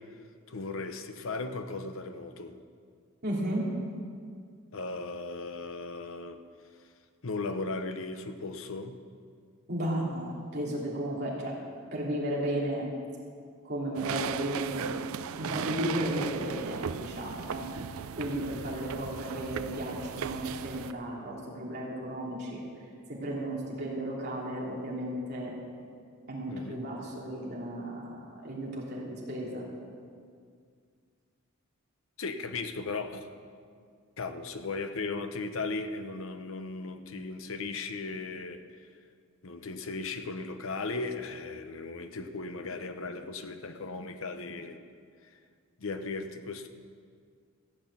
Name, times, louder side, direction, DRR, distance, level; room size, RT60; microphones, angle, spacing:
voice 1, 0.5-2.6 4.7-6.4 7.2-9.0 26.5-26.8 32.2-33.3 34.2-38.9 39.4-44.9 45.2-45.3 45.8-46.7, left 3 dB, 65° left, 8 dB, 0.8 m, -37 dB
voice 2, 3.2-3.7 9.7-11.5 11.9-12.8 13.6-14.9 15.3-17.7 18.2-22.6 23.1-25.6 26.3-29.7, right 1 dB, 50° right, -4 dB, 3.0 m, -34 dB
sound 1, 13.9-20.9, right 7 dB, 75° right, 0.4 m, -37 dB
15.0 x 6.1 x 8.7 m, 2.2 s
head